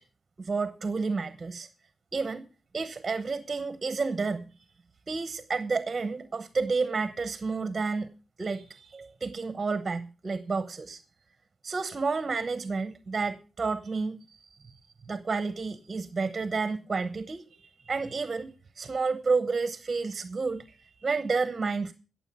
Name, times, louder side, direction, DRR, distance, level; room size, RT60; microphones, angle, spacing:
voice 1, 0.4-1.7 2.1-2.5 2.7-4.4 5.1-8.1 8.4-11.0 11.6-14.7 15.0-21.9, right 4 dB, 30° right, 0.9 m, -30 dB
17.0 x 7.4 x 5.6 m
wide cardioid pair, 115°, 0 cm